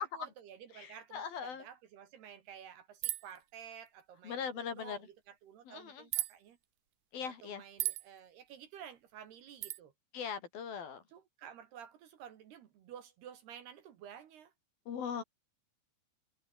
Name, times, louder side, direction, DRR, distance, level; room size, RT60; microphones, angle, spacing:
voice 1, 0.0-6.6 7.3-9.9 11.1-14.5, right 9 dB, 60° right, 3.5 m, -52 dB
voice 2, 0.7-1.7 4.2-5.0 5.7-6.0 7.1-7.6 10.1-11.0 14.9-15.2, left 7 dB, 55° left, 4.1 m, -40 dB
sound 1, 3.0-3.4 6.1-6.3 7.8-8.1 9.6-9.8, right 17 dB, 85° right, 2.0 m, -34 dB
omnidirectional pair, 5.6 m